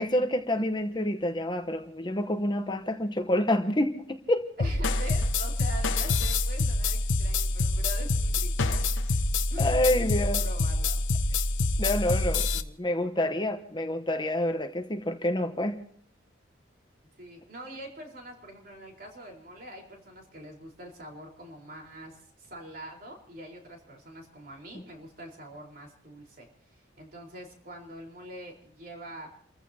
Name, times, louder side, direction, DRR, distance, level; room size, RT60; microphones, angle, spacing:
voice 1, 0.0-4.5 9.6-10.4 11.8-15.8, left 1 dB, 25° left, 6 dB, 0.9 m, -28 dB
sound 1, 4.6-12.6, left 2 dB, 90° left, 1.0 m, -26 dB
voice 2, 4.6-8.9 9.5-11.0 17.2-29.3, right 1 dB, 50° right, 0 dB, 4.2 m, -44 dB
30.0 x 15.0 x 2.8 m, 0.66 s
head